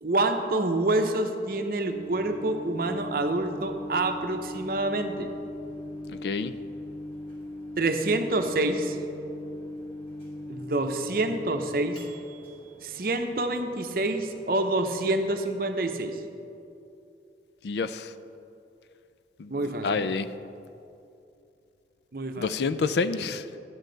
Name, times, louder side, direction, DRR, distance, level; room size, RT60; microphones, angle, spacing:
voice 1, 0.0-5.3 7.8-9.0 10.5-12.0 12.8-16.2 19.5-20.0 22.1-22.5, right 2 dB, 55° right, 6 dB, 0.7 m, -27 dB
Microwave oven, 1.9-15.3, left 1 dB, 30° left, 1.9 m, -40 dB
voice 2, 6.2-6.5 17.6-18.1 19.4-19.5 19.8-20.3 22.4-23.4, left 4 dB, 75° left, 12 dB, 0.4 m, -28 dB
11.0 x 10.5 x 3.9 m, 2.7 s
head